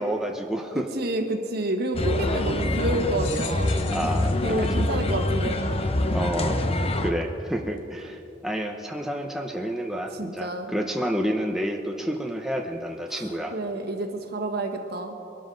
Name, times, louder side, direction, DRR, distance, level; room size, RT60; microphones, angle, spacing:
voice 1, 0.0-0.9 2.3-2.6 3.9-4.9 6.1-6.6 7.0-13.6, equal, ahead, 1 dB, 0.7 m, -29 dB
voice 2, 0.9-3.8 4.4-5.6 10.1-10.7 13.1-15.1, right 1 dB, 55° right, 4 dB, 1.4 m, -29 dB
sound 1, 1.9-7.1, left 1 dB, 30° left, 0.8 m, -25 dB
sound 2, 3.2-5.9 6.6-6.7 7.8-7.9, left 9 dB, 65° left, 1.0 m, -42 dB
22.5 x 12.5 x 3.9 m, 2.8 s
head